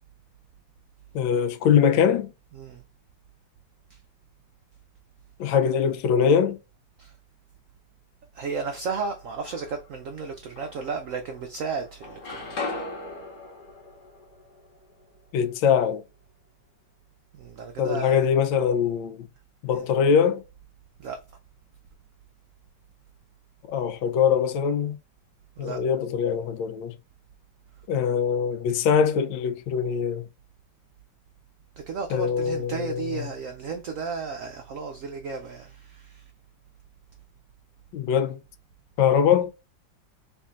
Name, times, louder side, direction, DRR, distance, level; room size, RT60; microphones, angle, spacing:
voice 1, 1.1-2.3 5.4-6.6 15.3-16.0 17.8-19.3 19.6-20.4 23.7-25.0 25.6-27.0 27.9-30.3 32.1-33.3 37.9-38.4 39.0-39.5, left 7 dB, 85° left, 1.3 m, -22 dB
voice 2, 8.3-12.8 17.3-18.2 19.7-19.8 21.0-21.2 25.6-25.8 31.9-36.2, right 5 dB, 85° right, 0.7 m, -34 dB
sound 1, 9.1-10.0 10.6-11.6 11.8-15.8, left 3 dB, 60° left, 1.8 m, -39 dB
4.4 x 3.6 x 2.4 m
omnidirectional pair, 2.0 m